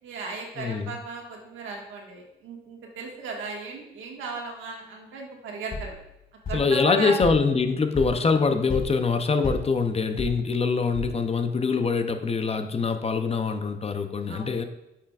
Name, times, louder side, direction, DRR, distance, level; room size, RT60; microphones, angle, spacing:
voice 1, 0.0-5.9 6.5-7.2 14.3-14.6, right 3 dB, 80° right, 0 dB, 1.7 m, -35 dB
voice 2, 0.6-1.0 6.5-14.6, left 4 dB, 30° left, 7 dB, 0.6 m, -24 dB
sound 1, 5.7-11.5, left 1 dB, 45° left, 2.4 m, -36 dB
8.2 x 5.8 x 2.4 m, 0.88 s
cardioid pair, 90°, 20 cm